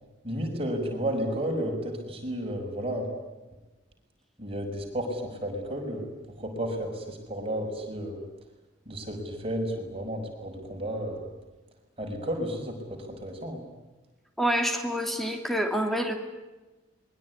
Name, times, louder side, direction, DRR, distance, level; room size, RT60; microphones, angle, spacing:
voice 1, 0.2-3.1 4.4-6.0 6.4-8.2 8.9-11.3 12.0-13.6, equal, 30° right, 1 dB, 6.3 m, -32 dB
voice 2, 14.4-16.2, equal, ahead, 4 dB, 3.0 m, -27 dB
26.0 x 22.0 x 9.8 m, 1.2 s
head